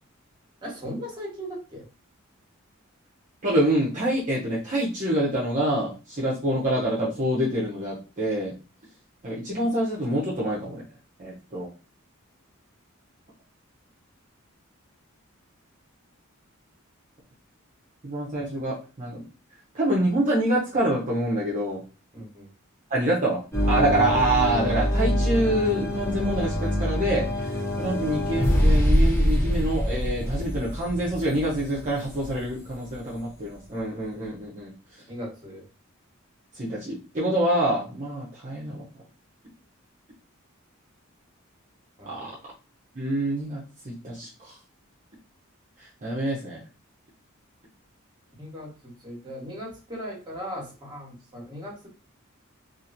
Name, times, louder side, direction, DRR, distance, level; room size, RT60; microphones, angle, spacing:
voice 1, 0.6-1.8 22.1-22.5 35.1-35.6 42.0-42.3 48.4-51.9, equal, 20° right, -2 dB, 1.2 m, -38 dB
voice 2, 3.4-8.5 9.2-10.8 11.2-11.7 18.0-19.2 19.7-21.8 22.9-23.4 23.7-27.3 27.8-34.7 36.5-38.8 42.1-42.4 42.9-44.5 46.0-46.6, right 1 dB, 40° right, -5 dB, 0.6 m, -26 dB
sound 1, 23.5-32.9, equal, 10° left, 0.6 m, -25 dB
2.8 x 2.4 x 2.5 m, 0.34 s
head